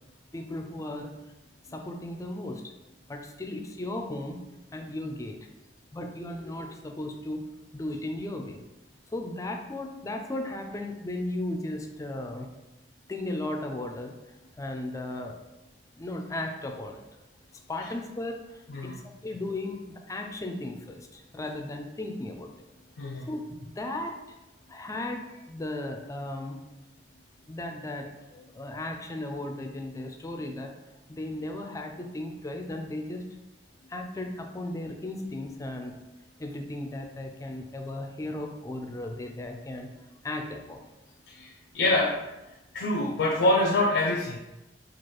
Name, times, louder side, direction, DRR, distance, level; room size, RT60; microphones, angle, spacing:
voice 1, 0.3-1.1 1.7-2.7 3.1-4.4 4.7-5.4 5.9-7.4 7.7-8.6 9.1-12.5 13.1-14.1 14.6-15.4 15.9-17.0 17.5-22.5 23.3-23.4 23.8-24.4 24.7-26.6 27.5-30.7 31.1-33.4 33.9-36.0 36.4-39.9 40.2-40.8, left 1 dB, 20° left, 4 dB, 0.4 m, -36 dB
voice 2, 23.0-23.3 41.3-42.1 42.7-44.4, left 2 dB, 85° left, -1 dB, 0.4 m, -25 dB
4.5 x 2.4 x 3.0 m, 1.0 s
head